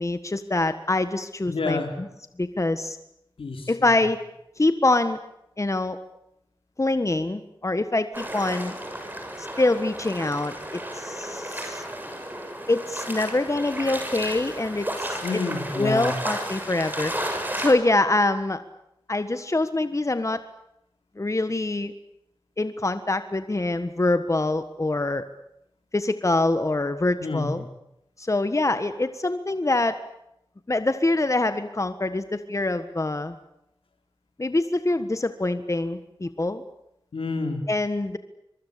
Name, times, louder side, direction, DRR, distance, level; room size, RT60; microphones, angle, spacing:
voice 1, 0.0-2.1 2.4-3.0 3.7-4.2 4.6-5.2 5.6-6.0 6.8-8.7 9.4-11.8 12.7-15.2 15.7-17.1 17.6-18.6 19.1-20.4 21.2-21.9 22.6-25.2 25.9-27.7 28.2-30.0 30.7-33.4 34.4-36.6 37.7-38.2, left 2 dB, 35° left, 10 dB, 1.5 m, -25 dB
voice 2, 1.5-1.9 3.4-3.9 15.2-16.1 27.2-27.5 37.1-37.6, left 3 dB, 85° left, 4 dB, 4.5 m, -28 dB
sound 1, 8.1-17.7, right 1 dB, 20° right, 7.1 m, -33 dB
24.5 x 23.5 x 8.5 m, 0.83 s
cardioid pair, 45°, 9 cm